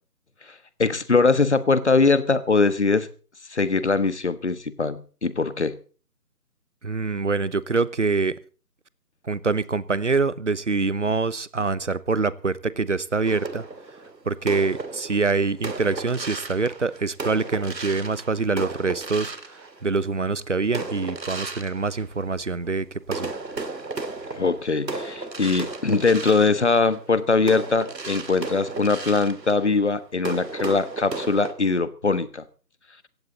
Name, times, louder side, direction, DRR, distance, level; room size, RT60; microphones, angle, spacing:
voice 1, 0.8-3.1 3.5-5.8 24.4-32.4, left 4 dB, 45° left, 15 dB, 1.3 m, -22 dB
voice 2, 6.8-8.4 9.2-13.6 14.2-23.3, right 4 dB, 45° right, 19 dB, 0.9 m, -25 dB
sound 1, 13.2-20.2 20.7-22.7 23.0-31.5, right 3 dB, 85° right, 2.6 m, -35 dB
17.0 x 15.5 x 4.0 m, 0.38 s
figure-of-eight pair, 170°, 49 cm